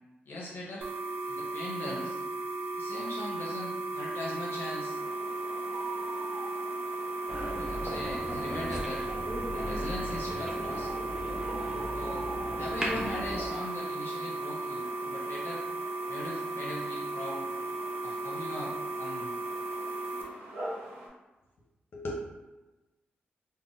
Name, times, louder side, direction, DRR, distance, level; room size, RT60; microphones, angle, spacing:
voice 1, 0.3-0.9 1.3-2.2 2.8-5.0 7.5-9.1 9.5-10.9 11.9-12.3 12.6-15.6 16.1-17.5 18.0-19.3 21.9-22.2, left 1 dB, 70° left, -4 dB, 0.6 m, -40 dB
sound 1, 0.8-20.2, right 2 dB, 65° right, 0.5 m, -35 dB
sound 2, 4.1-21.1, right 1 dB, 85° right, 1.0 m, -46 dB
sound 3, 7.3-13.5, equal, 15° right, 0.6 m, -37 dB
3.6 x 2.1 x 2.5 m, 1.1 s
cardioid pair, 85°, 4 cm